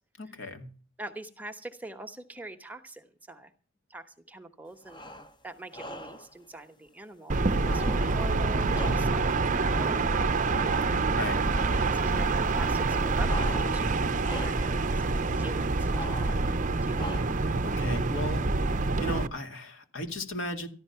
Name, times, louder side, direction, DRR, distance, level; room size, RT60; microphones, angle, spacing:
voice 1, 0.2-0.7 11.1-11.5 17.6-18.4 19.0-20.7, left 1 dB, 70° left, 2.2 m, -36 dB
voice 2, 1.0-3.5 3.9-5.0 5.4-10.8 11.8-17.0, right 2 dB, 10° right, 1.0 m, -44 dB
sound 1, 4.8-5.4 5.7-6.3 7.6-9.4 10.5-11.2 11.5-12.0 13.2-13.9 14.2-14.8 15.9-16.5 16.9-17.5, equal, 20° left, 0.9 m, -41 dB
sound 2, 7.3-19.3, right 3 dB, 40° right, 0.7 m, -26 dB
14.0 x 11.5 x 5.7 m
head